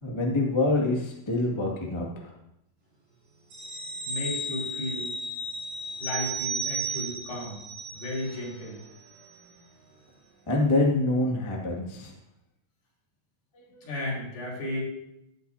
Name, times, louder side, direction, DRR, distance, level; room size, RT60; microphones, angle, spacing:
voice 1, 0.0-2.3 10.5-12.1 13.7-13.9, left 2 dB, 15° left, -2 dB, 0.9 m, -26 dB
sound 1, 3.5-8.6 8.9-9.1, right 2 dB, 85° right, 5.9 m, -34 dB
voice 2, 4.0-5.1 6.0-7.6 7.9-8.8 13.8-14.8, left 1 dB, 65° left, -5 dB, 6.7 m, -34 dB
15.5 x 12.0 x 2.8 m, 0.83 s
omnidirectional pair, 4.4 m